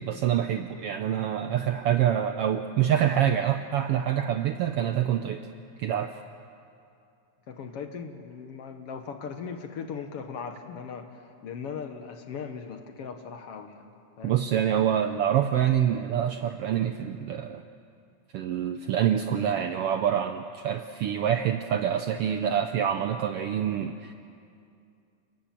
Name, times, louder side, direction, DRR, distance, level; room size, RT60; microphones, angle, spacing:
voice 1, 0.0-5.5 5.8-6.1 14.2-17.6 18.3-24.1, right 9 dB, 80° right, 8 dB, 1.3 m, -26 dB
voice 2, 7.5-13.9 14.2-14.4, left 6 dB, 60° left, 6 dB, 1.9 m, -38 dB
29.5 x 19.0 x 7.5 m, 2.5 s
omnidirectional pair, 3.4 m